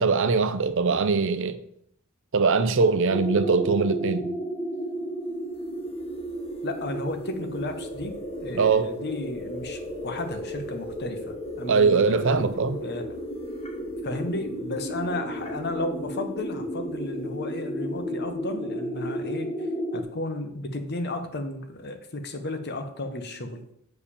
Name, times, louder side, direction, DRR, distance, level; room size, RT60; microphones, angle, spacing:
voice 1, 0.0-1.6 2.3-4.3 8.5-8.9 11.7-12.8, right 4 dB, 60° right, 0.7 m, -22 dB
sound 1, 3.1-20.0, equal, 30° left, 1.3 m, -33 dB
voice 2, 6.6-12.4 12.8-13.1 14.0-23.6, left 2 dB, 50° left, 1.1 m, -34 dB
6.8 x 5.0 x 6.9 m
head